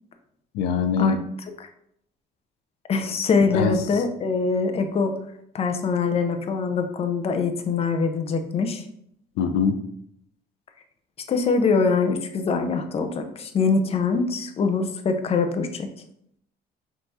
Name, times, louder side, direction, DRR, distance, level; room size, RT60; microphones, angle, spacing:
voice 1, 0.5-1.2 3.5-4.0 9.4-9.8, left 6 dB, 90° left, 9 dB, 0.4 m, -23 dB
voice 2, 2.9-5.2 5.5-8.8 11.3-15.9, left 4 dB, 35° left, 7 dB, 0.5 m, -23 dB
4.3 x 3.5 x 2.7 m, 0.72 s
cardioid pair, 110°, 17 cm